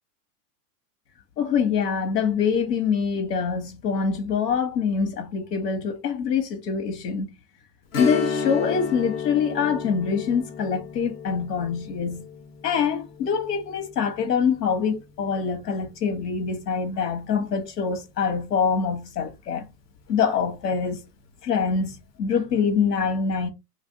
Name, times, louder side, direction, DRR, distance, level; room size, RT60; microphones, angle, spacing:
voice 1, 1.4-7.3 8.0-12.2 12.6-19.7 20.1-21.0 21.4-23.5, left 6 dB, 85° left, 1.4 m, -25 dB
Strum, 7.9-17.1 17.4-17.5 20.1-20.3 20.7-20.8, left 6 dB, 30° left, 0.6 m, -34 dB
3.0 x 2.6 x 4.0 m
hypercardioid pair, 140°, 47 cm